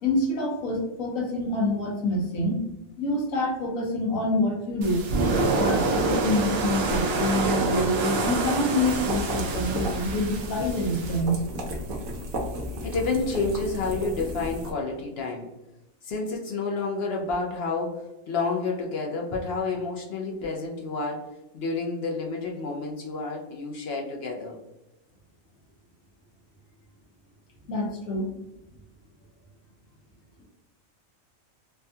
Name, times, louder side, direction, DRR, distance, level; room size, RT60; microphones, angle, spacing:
voice 1, 0.0-2.6 3.0-5.0 5.6-11.4 27.7-28.3, left 1 dB, 80° left, 0 dB, 1.2 m, -26 dB
sound 1, 4.8-11.2, right 3 dB, 60° right, 0.7 m, -27 dB
sound 2, 8.9-14.7, equal, 90° right, 1.1 m, -34 dB
voice 2, 12.8-15.5 16.0-21.2 21.5-24.6, left 3 dB, 60° left, 0 dB, 0.7 m, -29 dB
3.3 x 2.2 x 2.7 m, 0.94 s
omnidirectional pair, 1.4 m